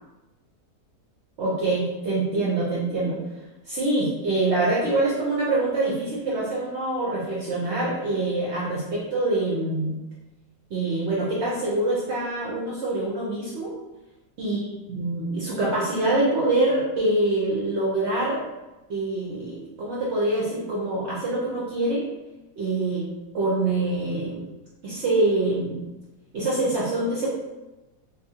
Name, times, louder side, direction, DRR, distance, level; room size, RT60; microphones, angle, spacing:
voice 1, 1.4-3.2 3.7-9.9 10.7-13.7 14.4-14.6 14.9-18.4 18.9-22.1 22.6-23.1 23.3-24.5 24.8-25.9 26.3-27.3, right 2 dB, 65° right, -6 dB, 0.7 m, -25 dB
2.6 x 2.3 x 2.7 m, 1.0 s
omnidirectional pair, 1.7 m